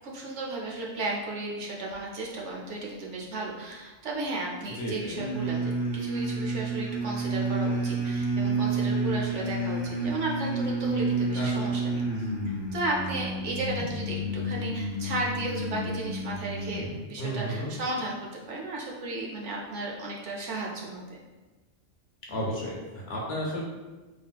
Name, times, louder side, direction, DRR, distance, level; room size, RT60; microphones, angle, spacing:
voice 1, 0.0-21.0, right 2 dB, 75° right, -2 dB, 0.9 m, -34 dB
voice 2, 4.8-5.1 11.4-11.7 17.2-17.7 22.3-23.6, equal, 60° left, -4 dB, 1.0 m, -32 dB
sound 1, 5.1-17.0, right 2 dB, 25° left, 0.9 m, -30 dB
3.4 x 2.6 x 2.2 m, 1.2 s
omnidirectional pair, 1.2 m